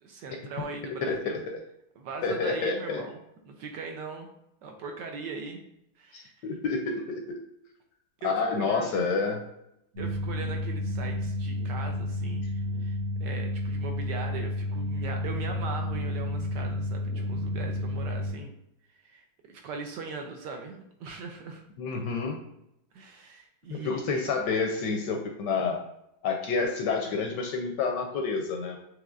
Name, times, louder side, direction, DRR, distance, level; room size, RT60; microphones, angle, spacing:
voice 1, 0.0-1.4 2.0-3.2 3.4-4.3 4.6-5.6 6.0-6.3 8.2-9.1 10.0-18.5 19.0-21.6 22.9-24.2, right 4 dB, 70° right, 3 dB, 1.2 m, -40 dB
voice 2, 1.0-1.6 2.2-3.0 6.1-7.4 8.2-9.4 12.4-12.5 21.8-22.4 23.7-25.8 26.2-28.8, left 4 dB, 75° left, 2 dB, 1.1 m, -29 dB
sound 1, 9.9-18.3, left 1 dB, 90° right, 2.9 m, -31 dB
6.3 x 3.1 x 2.4 m, 0.80 s
omnidirectional pair, 2.2 m